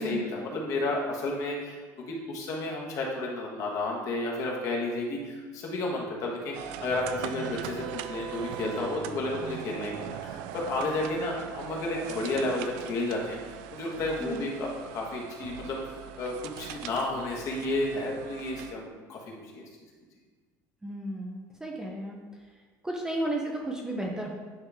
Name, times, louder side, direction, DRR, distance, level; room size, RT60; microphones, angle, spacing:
voice 1, 0.0-19.6, left 2 dB, 45° left, -2 dB, 1.4 m, -32 dB
sound 1, 6.5-18.7, right 10 dB, 80° right, 0.4 m, -40 dB
voice 2, 20.8-22.2 22.8-24.3, right 1 dB, 10° right, -1 dB, 0.6 m, -33 dB
9.5 x 3.2 x 3.5 m, 1.4 s
cardioid pair, 155°, 8 cm